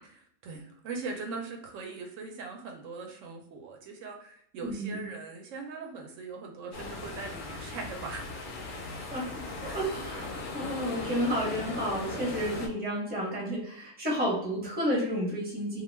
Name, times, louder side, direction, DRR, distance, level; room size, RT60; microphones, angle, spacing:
voice 1, 0.1-8.3 9.0-9.1 9.6-9.8 10.3-10.5, right 4 dB, 80° right, 2 dB, 0.9 m, -41 dB
voice 2, 4.6-5.0 9.1-15.8, equal, 10° right, -4 dB, 0.8 m, -31 dB
sound 1, 6.7-12.7, left 2 dB, 55° left, 0.6 m, -38 dB
2.3 x 2.2 x 3.2 m, 0.69 s
omnidirectional pair, 1.3 m